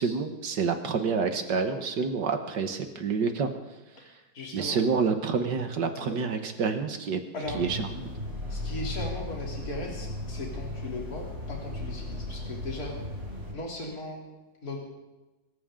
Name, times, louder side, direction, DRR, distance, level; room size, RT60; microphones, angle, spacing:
voice 1, 0.0-3.5 4.5-7.2 7.5-8.1, right 5 dB, 65° right, 7 dB, 1.8 m, -28 dB
voice 2, 4.3-4.8 6.1-6.2 7.3-7.6 8.5-12.9 13.5-14.2 14.6-14.8, left 2 dB, 50° left, -2 dB, 3.7 m, -37 dB
sound 1, 7.4-13.5, left 1 dB, 35° right, 7.1 m, -36 dB
24.5 x 14.5 x 3.8 m, 1.1 s
omnidirectional pair, 2.1 m